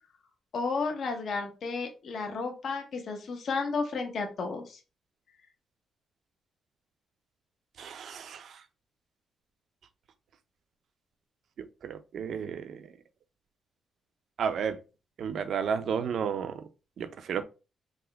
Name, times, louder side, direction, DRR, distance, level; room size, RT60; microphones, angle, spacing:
voice 1, 0.5-4.8, left 4 dB, 60° left, 0.7 m, -32 dB
voice 2, 7.8-8.6 11.8-12.8 14.4-14.8 15.2-16.6 17.0-17.4, right 7 dB, 65° right, 0.5 m, -32 dB
3.6 x 2.2 x 3.3 m
cardioid pair, 110°, 0 cm